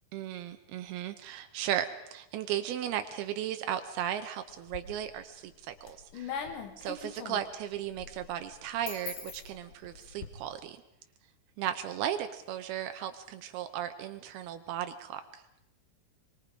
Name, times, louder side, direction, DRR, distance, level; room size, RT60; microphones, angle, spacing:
voice 1, 0.1-6.5 6.8-10.8 11.6-15.4, right 11 dB, 80° right, 8 dB, 2.8 m, -36 dB
sound 1, 4.5-5.2 5.6-10.3, left 7 dB, 60° left, 3.3 m, -42 dB
24.5 x 23.5 x 5.1 m, 0.90 s
omnidirectional pair, 4.5 m